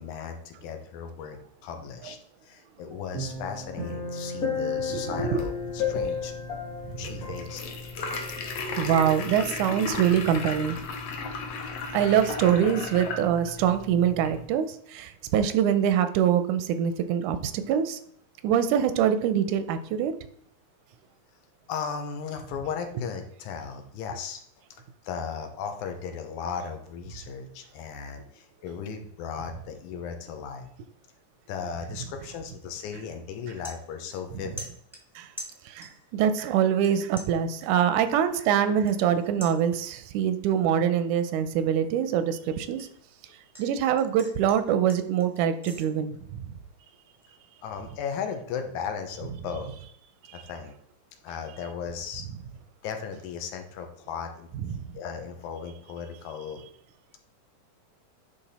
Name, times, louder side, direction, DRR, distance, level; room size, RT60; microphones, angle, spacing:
voice 1, 0.0-2.2 2.4-6.3 7.0-7.6 11.6-11.8 21.7-24.4 25.0-30.7 31.5-34.7 47.6-49.7 50.3-50.7 51.2-52.3 52.8-54.5 54.9-56.6, left 6 dB, 85° left, 6 dB, 2.3 m, -36 dB
sound 1, 3.1-8.6 8.9-9.1, left 5 dB, 35° left, 1.4 m, -33 dB
voice 2, 4.9-5.4 8.8-10.8 11.9-18.0 18.4-20.1 35.2-35.3 35.7-42.9 43.6-46.4 50.3-50.4 54.8-54.9, right 9 dB, 85° right, 11 dB, 2.1 m, -24 dB
sound 2, 5.0-14.5, left 4 dB, 65° left, 1.9 m, -36 dB
sound 3, 32.8-32.9 33.3-34.3 34.6-36.1 36.4-36.9 37.2-40.1 40.5-40.8 41.2-43.7 44.0-45.8, equal, ahead, 0.5 m, -45 dB
9.9 x 3.4 x 4.1 m, 0.66 s
omnidirectional pair, 3.4 m